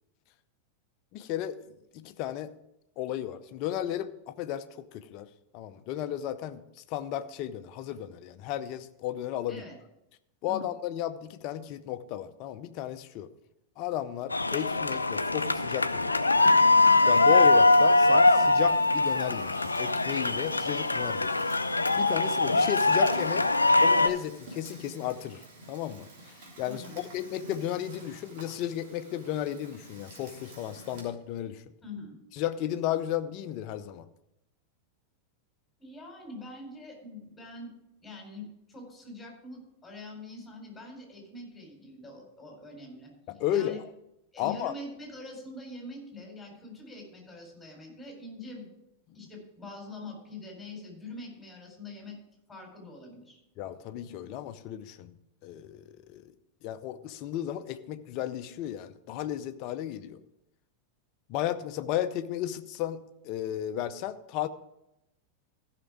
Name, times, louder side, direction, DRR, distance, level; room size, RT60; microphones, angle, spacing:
voice 1, 1.1-1.6 1.9-2.5 3.0-5.3 5.5-9.6 10.4-13.3 13.8-16.3 17.1-21.5 22.0-23.4 23.8-25.4 25.7-31.6 32.4-34.1 43.3-43.9 44.4-44.7 53.6-55.2 55.4-56.3 56.6-60.2 61.3-64.5, left 11 dB, 40° left, 11 dB, 0.6 m, -34 dB
sound 1, 14.3-24.1, left 2 dB, 80° left, 0.5 m, -22 dB
Fire, 16.4-31.0, right 1 dB, 50° right, 3.2 m, -48 dB
voice 2, 26.6-27.0 31.8-32.2 35.8-37.7 38.0-43.1 43.5-43.8 44.3-48.7 49.1-52.2 52.5-53.4, left 2 dB, 5° left, 0 dB, 4.4 m, -44 dB
15.0 x 5.9 x 5.0 m, 0.86 s
figure-of-eight pair, 90°, 0 cm